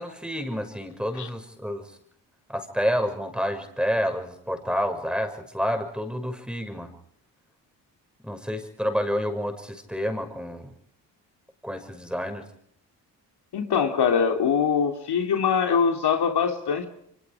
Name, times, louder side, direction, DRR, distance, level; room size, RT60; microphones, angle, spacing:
voice 1, 0.0-1.9 2.5-6.9 8.2-10.7 11.6-12.5, equal, ahead, 6 dB, 6.3 m, -29 dB
voice 2, 13.5-16.9, left 6 dB, 65° left, 4 dB, 3.4 m, -23 dB
30.0 x 24.5 x 5.1 m, 0.70 s
supercardioid pair, 55°, 43 cm